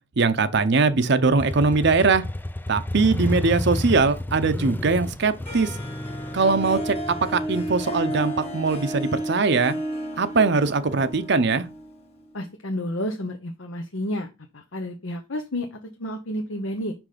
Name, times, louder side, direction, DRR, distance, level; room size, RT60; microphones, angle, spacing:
voice 1, 0.2-2.2 2.7-5.7 6.3-7.0 7.3-9.8 10.2-11.7, right 4 dB, 60° right, 0.7 m, -21 dB
Motorcycle, 1.4-9.0, left 1 dB, 10° left, 0.3 m, -31 dB
Harp, 5.5-12.3, right 1 dB, 30° left, 1.6 m, -32 dB
voice 2, 12.3-14.3 14.5-16.9, left 1 dB, 85° left, 1.0 m, -30 dB
6.1 x 5.5 x 5.0 m
head